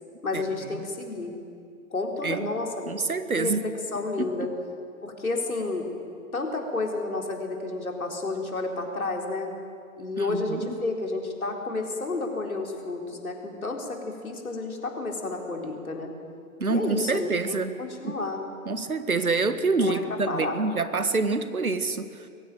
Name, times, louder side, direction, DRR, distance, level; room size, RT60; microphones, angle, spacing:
voice 1, 0.2-1.3 1.9-4.5 5.0-5.9 6.3-9.5 10.0-16.1 16.7-18.4 19.8-20.0 20.3-20.6, left 3 dB, 85° left, 1 dB, 4.1 m, -31 dB
voice 2, 2.9-3.6 4.2-4.5 10.2-10.8 16.6-17.8 18.0-18.2 18.6-22.3, right 3 dB, 90° right, 11 dB, 1.6 m, -27 dB
22.5 x 16.5 x 9.1 m, 2.5 s
figure-of-eight pair, 120°, 42 cm